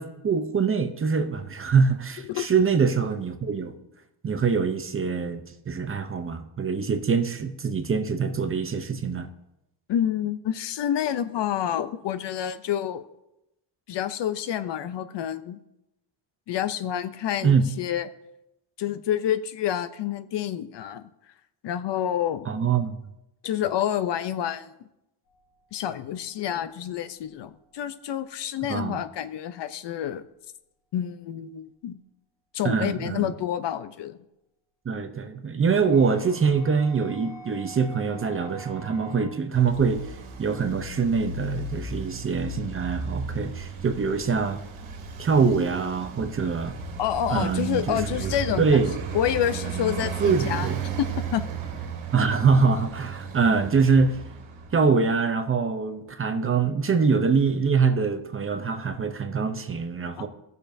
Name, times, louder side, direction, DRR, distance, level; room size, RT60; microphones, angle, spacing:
voice 1, 0.0-3.7 4.2-5.4 5.7-9.3 17.4-17.6 22.5-22.9 28.7-29.0 32.6-33.3 34.9-44.6 45.2-46.7 47.3-49.0 50.2-50.8 52.1-54.2 54.7-60.3, right 5 dB, 30° right, 8 dB, 0.6 m, -24 dB
voice 2, 9.9-13.0 13.9-15.6 16.5-18.1 18.8-21.1 21.6-22.5 23.4-24.7 25.7-30.2 30.9-32.0 32.5-34.2 47.0-48.8 49.1-50.7 51.0-51.4 60.2-60.3, left 10 dB, 60° left, 13 dB, 0.6 m, -28 dB
sound 1, 25.3-26.1 35.7-39.2, right 3 dB, 85° left, 4.1 m, -46 dB
Traffic noise roadway noise, 39.5-55.0, right 5 dB, 80° right, 1.6 m, -35 dB
17.0 x 6.7 x 2.6 m, 0.88 s
cardioid pair, 150°, 48 cm